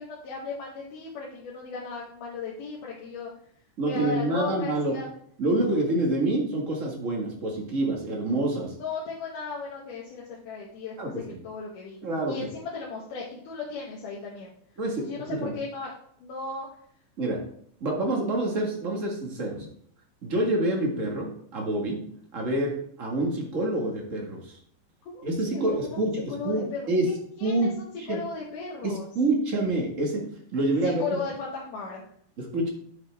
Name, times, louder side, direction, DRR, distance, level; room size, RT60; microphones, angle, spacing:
voice 1, 0.0-3.3 3.8-5.1 8.8-12.0 12.3-14.5 15.0-15.9 16.2-16.7 25.1-26.0 26.3-29.1 30.8-32.0, left 4 dB, 80° left, -4 dB, 2.8 m, -36 dB
voice 2, 3.8-5.0 5.4-8.7 11.0-11.2 12.0-12.3 14.8-15.5 17.2-17.4 17.8-19.6 20.2-22.0 22.3-22.7 23.0-24.6 25.2-27.1 27.4-27.7 28.1-28.2 28.8-30.2 30.5-31.0 32.4-32.7, right 2 dB, 30° right, 0 dB, 1.5 m, -27 dB
9.5 x 6.7 x 3.5 m, 0.64 s
omnidirectional pair, 3.7 m